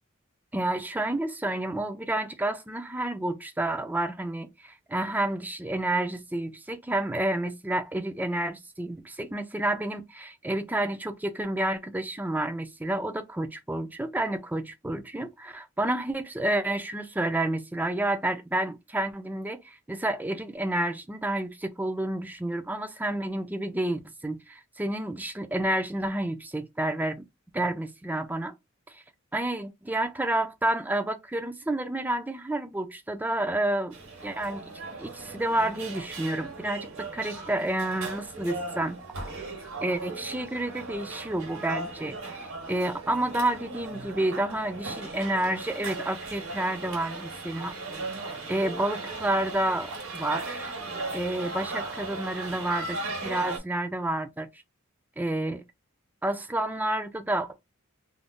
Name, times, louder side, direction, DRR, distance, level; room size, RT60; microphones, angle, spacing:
voice 1, 0.5-27.2 27.5-28.5 28.9-29.0 29.3-34.0 34.2-34.6 35.0-36.9 37.1-39.0 39.4-39.5 39.8-47.7 48.5-50.7 51.1-54.5 55.2-55.6 56.2-57.6, right 1 dB, 10° right, 0.3 m, -30 dB
sound 1, 33.9-53.6, right 2 dB, 80° right, 1.1 m, -37 dB
2.5 x 2.1 x 3.5 m
head